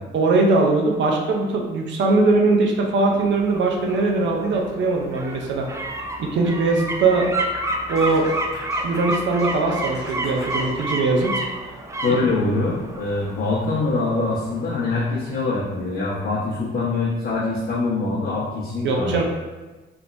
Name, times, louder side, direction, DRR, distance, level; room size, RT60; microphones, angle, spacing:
voice 1, 0.1-5.7 6.2-7.3 7.9-8.3 8.8-11.3 12.2-12.3 18.8-19.2, right 3 dB, 70° right, 0 dB, 0.7 m, -20 dB
sound 1, 2.8-15.6 16.0-16.1, right 1 dB, 15° right, 0.4 m, -31 dB
Scratching (performance technique), 7.9-10.7, equal, 15° left, 0.9 m, -40 dB
voice 2, 12.0-19.2, left 3 dB, 55° left, -10 dB, 1.1 m, -24 dB
3.4 x 3.1 x 2.6 m, 1.2 s
cardioid pair, 90°, 20 cm